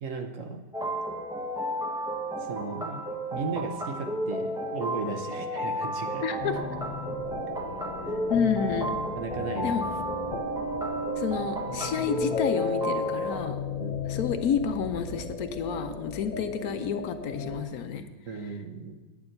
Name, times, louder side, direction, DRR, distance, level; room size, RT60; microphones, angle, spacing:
voice 1, 0.0-0.7 2.4-3.0 3.3-6.2 8.1-8.2 9.2-9.8 13.8-14.0 16.3-16.4 18.3-19.0, right 4 dB, 55° right, 5 dB, 1.1 m, -36 dB
sound 1, 0.7-13.4, right 1 dB, 5° right, 0.5 m, -33 dB
voice 2, 6.2-6.6 8.3-9.0 9.6-9.8 11.2-13.6 14.1-18.1, left 7 dB, 65° left, 9 dB, 1.0 m, -30 dB
sound 2, 6.4-17.6, left 3 dB, 45° left, 1.5 m, -35 dB
9.5 x 7.0 x 6.5 m, 1.2 s
omnidirectional pair, 1.9 m